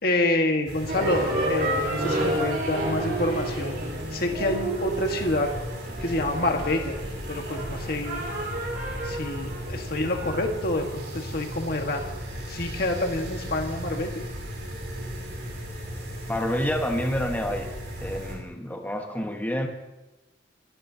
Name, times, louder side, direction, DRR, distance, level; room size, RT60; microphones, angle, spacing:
voice 1, 0.0-3.7 4.1-5.5 6.0-7.0 7.3-8.2 9.0-12.0 12.5-14.2, left 2 dB, 55° left, 3 dB, 1.7 m, -27 dB
sound 1, 0.6-18.3, equal, 70° right, 6.3 m, -36 dB
sound 2, 0.9-12.1, right 2 dB, 50° right, 4.4 m, -31 dB
voice 2, 16.3-17.7 18.0-19.7, equal, 10° left, 2 dB, 1.3 m, -28 dB
28.5 x 14.5 x 2.9 m, 1.0 s
head